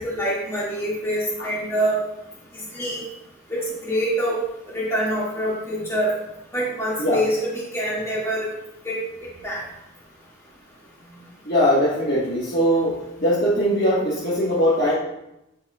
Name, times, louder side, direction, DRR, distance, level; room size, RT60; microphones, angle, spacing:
voice 1, 0.0-2.0 2.5-3.0 3.5-4.4 4.7-6.1 6.5-8.5 8.8-9.0 9.4-9.6, equal, 15° left, -6 dB, 2.0 m, -25 dB
voice 2, 11.4-14.9, equal, 50° left, -9 dB, 1.4 m, -21 dB
9.1 x 5.4 x 2.3 m, 0.88 s
head